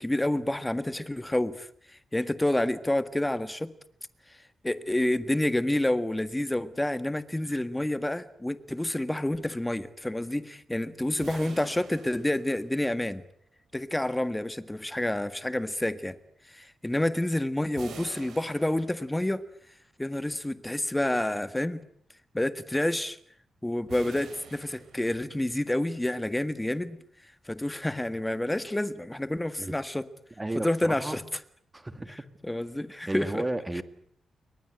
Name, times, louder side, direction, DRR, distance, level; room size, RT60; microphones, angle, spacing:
voice 1, 0.0-1.7 2.1-3.7 4.6-13.2 13.7-16.2 16.5-19.4 20.0-21.8 22.3-23.2 23.6-27.0 27.5-30.1 30.6-31.2 32.4-33.4 33.8-33.9, left 1 dB, 10° left, 1.7 m, -29 dB
sound 1, 11.2-13.1 17.8-19.4 23.9-25.5, right 6 dB, 75° right, 5.9 m, -47 dB
voice 2, 30.4-31.2 31.7-32.2 33.1-33.8, right 1 dB, 15° right, 2.4 m, -33 dB
30.0 x 23.5 x 8.0 m
wide cardioid pair, 135°, 0 cm